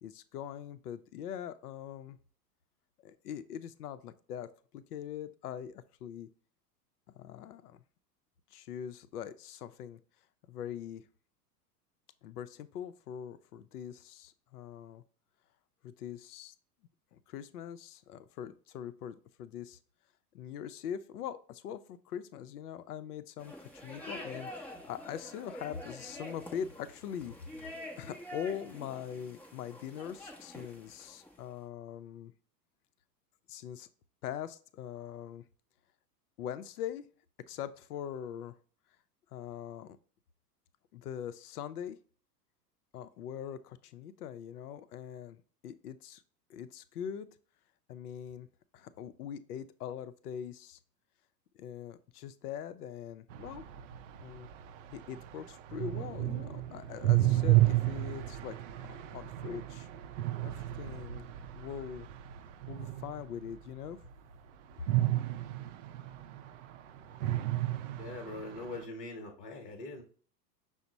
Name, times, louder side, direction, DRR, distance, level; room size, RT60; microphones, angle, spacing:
voice 1, 0.0-2.2 3.0-6.3 7.1-7.8 8.5-10.0 10.5-11.0 12.2-15.0 15.8-16.5 17.1-19.8 20.3-27.6 28.0-32.3 33.5-33.9 34.2-35.4 36.4-37.1 37.5-38.5 39.3-40.0 40.9-42.0 42.9-46.2 46.5-47.3 47.9-48.5 48.7-50.8 51.6-53.6 54.2-54.5 54.9-59.9 60.4-61.3 61.6-62.1 62.7-64.0, left 9 dB, 70° left, 12 dB, 0.6 m, -42 dB
sound 1, 23.4-31.5, left 1 dB, 5° left, 0.5 m, -47 dB
sound 2, 53.3-63.5 64.9-66.8 67.1-68.8, right 16 dB, 50° right, 0.5 m, -32 dB
voice 2, 68.0-70.0, left 3 dB, 25° left, 2 dB, 1.0 m, -42 dB
5.8 x 2.1 x 3.9 m, 0.42 s
figure-of-eight pair, 95°, 49 cm